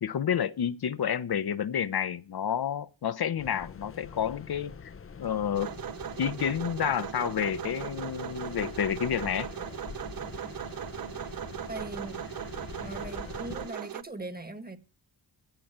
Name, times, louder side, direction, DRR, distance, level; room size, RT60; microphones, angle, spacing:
voice 1, 0.0-4.9 5.2-5.7 6.2-9.5, left 8 dB, 55° left, 0.8 m, -30 dB
sound 1, 3.4-13.7, left 6 dB, 30° left, 0.7 m, -44 dB
sound 2, 5.5-14.0, right 10 dB, 50° right, 0.7 m, -38 dB
voice 2, 11.7-12.1 12.8-14.8, right 2 dB, 20° right, 1.7 m, -40 dB
15.0 x 6.9 x 7.8 m
cardioid pair, 80°, 45 cm